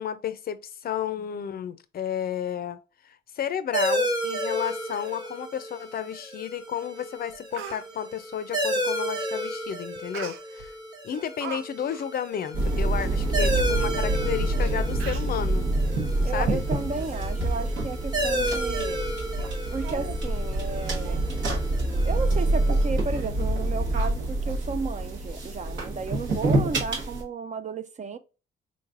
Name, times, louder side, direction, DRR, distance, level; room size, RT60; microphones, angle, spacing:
voice 1, 0.0-2.8 3.0-10.7 11.0-15.7 16.3-16.6, left 9 dB, 50° left, 0.4 m, -32 dB
sound 1, 3.7-22.9, right 1 dB, 20° right, 1.1 m, -33 dB
Speech, 6.8-6.9 7.3-7.8 10.1-10.7 11.1-11.6 11.9-12.1 12.7-12.8 12.9-13.1 13.9-14.0 14.6-14.7 15.0-15.4 16.0-16.2 16.7-17.4 17.7-17.8 18.3-18.4 18.9-19.0 19.4-19.5 19.8-20.2 20.5-20.7 21.0-21.2 21.6-21.7 22.1-22.3 22.7-22.9 23.9-24.6 25.0-25.1, right 8 dB, 85° right, 0.5 m, -41 dB
sound 2, 12.5-27.2, right 2 dB, 70° right, 1.1 m, -26 dB
voice 2, 16.2-19.0 19.7-21.2 22.0-28.2, right 4 dB, 35° right, 0.4 m, -33 dB
4.0 x 3.2 x 2.4 m
cardioid pair, 90°, 20 cm